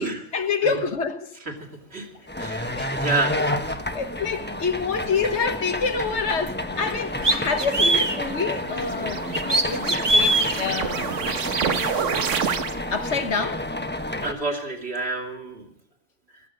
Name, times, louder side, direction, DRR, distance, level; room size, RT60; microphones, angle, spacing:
voice 1, 0.0-1.3 2.7-3.5 3.9-11.2 12.9-13.7, left 5 dB, 70° left, 1.5 m, -27 dB
voice 2, 1.5-2.1 2.4-3.5 14.2-15.7, right 2 dB, 60° right, 3.0 m, -29 dB
Suitcase Metal Mover A, 2.3-14.3, left 1 dB, 10° left, 1.0 m, -30 dB
sound 1, 6.5-6.6 7.2-8.2 9.3-10.5, right 1 dB, 20° right, 1.2 m, -20 dB
sound 2, 8.1-13.1, right 7 dB, 90° right, 1.4 m, -29 dB
15.5 x 13.0 x 6.5 m
omnidirectional pair, 1.2 m